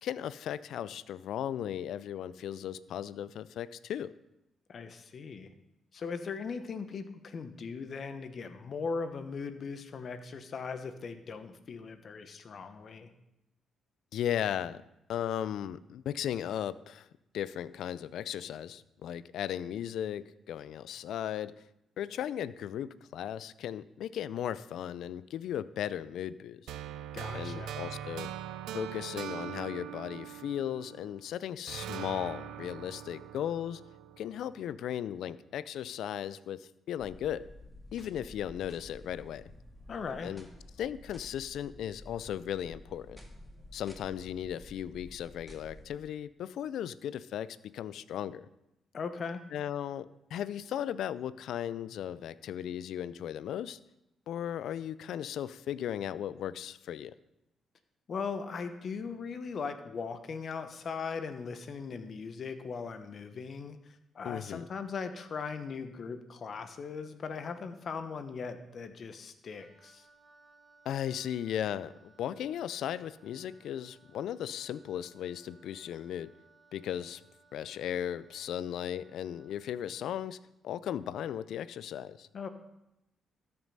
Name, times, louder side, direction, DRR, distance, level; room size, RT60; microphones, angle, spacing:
voice 1, 0.0-4.1 14.1-14.8 15.1-17.1 17.3-21.6 22.0-26.7 27.3-28.3 28.7-33.8 34.2-37.5 37.9-39.5 40.2-40.5 40.8-43.2 43.7-48.5 49.5-53.8 54.3-57.2 64.2-64.7 70.8-76.3 76.7-77.2 77.5-80.4 80.6-82.3, left 10 dB, 75° left, 18 dB, 0.4 m, -36 dB
voice 2, 4.7-5.5 5.9-13.1 27.1-27.7 39.9-40.3 48.9-49.4 58.1-70.1 82.3-82.5, left 5 dB, 55° left, 10 dB, 1.1 m, -39 dB
sound 1, 26.7-31.2 31.7-34.8, right 10 dB, 80° right, 0.6 m, -42 dB
sound 2, 37.0-45.9, left 1 dB, 10° left, 2.3 m, -52 dB
Wind instrument woodwind instrument, 69.5-80.2, right 3 dB, 15° right, 1.9 m, -63 dB
13.0 x 6.1 x 5.5 m, 0.89 s
supercardioid pair, 50°, 0 cm